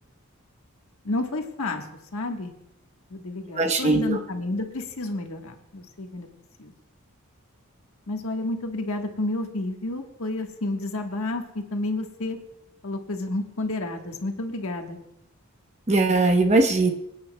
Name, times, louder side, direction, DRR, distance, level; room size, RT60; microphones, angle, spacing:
voice 1, 1.0-1.9 2.1-2.5 3.1-6.3 6.6-6.7 8.1-12.4 12.8-15.0, left 2 dB, 70° left, 3 dB, 1.4 m, -30 dB
voice 2, 3.6-4.2 15.9-16.9, right 2 dB, 30° right, 5 dB, 0.9 m, -20 dB
24.0 x 9.6 x 2.2 m, 0.82 s
head